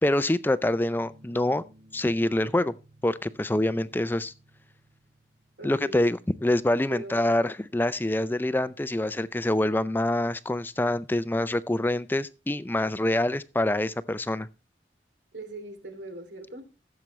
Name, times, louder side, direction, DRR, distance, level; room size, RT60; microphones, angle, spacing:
voice 1, 0.0-1.6 1.9-2.7 3.0-4.3 5.6-14.5, left 1 dB, 10° left, 0.4 m, -26 dB
sound 1, 1.0-12.2, right 1 dB, 35° right, 1.2 m, -60 dB
voice 2, 5.6-6.1 6.9-7.2 15.3-16.6, right 1 dB, 85° right, 2.7 m, -40 dB
15.5 x 7.3 x 3.1 m
head